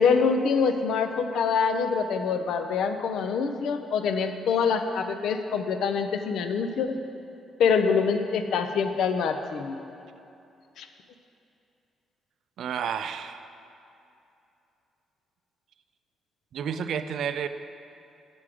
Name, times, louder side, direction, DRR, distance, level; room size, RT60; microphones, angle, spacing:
voice 1, 0.0-7.0 7.6-9.8 10.8-10.9, left 5 dB, 75° left, 7 dB, 0.5 m, -25 dB
voice 2, 12.6-13.5 16.5-17.5, right 7 dB, 70° right, 10 dB, 0.4 m, -31 dB
7.6 x 6.1 x 4.8 m, 2.7 s
cardioid pair, 90°, 0 cm